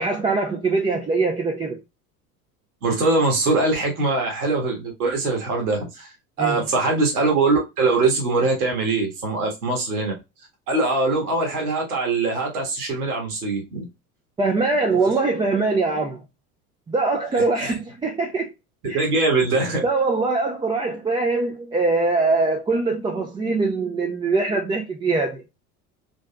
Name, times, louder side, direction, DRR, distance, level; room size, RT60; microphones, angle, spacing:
voice 1, 0.0-1.8 6.4-6.6 14.4-16.2 16.9-18.5 18.9-19.1 19.8-25.4, right 3 dB, 10° right, 0.4 m, -22 dB
voice 2, 2.8-6.1 6.4-10.1 10.7-13.9 17.3-17.7 18.9-19.9, right 3 dB, 75° right, 1.6 m, -22 dB
3.9 x 3.1 x 2.3 m
hypercardioid pair, 75°, 45 cm